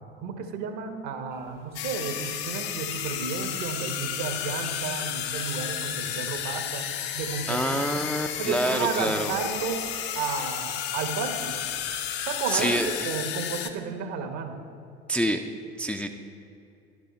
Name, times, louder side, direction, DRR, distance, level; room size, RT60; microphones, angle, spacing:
voice 1, 0.2-6.9 7.1-8.0 8.4-9.8 10.1-11.6 12.3-14.6, right 5 dB, 55° right, 7 dB, 1.2 m, -32 dB
sound 1, 1.3-12.9, left 3 dB, 90° left, 1.2 m, -50 dB
sound 2, 1.7-13.7, left 10 dB, 65° left, 0.8 m, -32 dB
voice 2, 7.5-9.3 12.5-13.1 15.1-15.4 15.8-16.1, right 1 dB, 5° left, 4 dB, 0.5 m, -27 dB
11.0 x 8.8 x 4.2 m, 2.6 s
figure-of-eight pair, 65°, 33 cm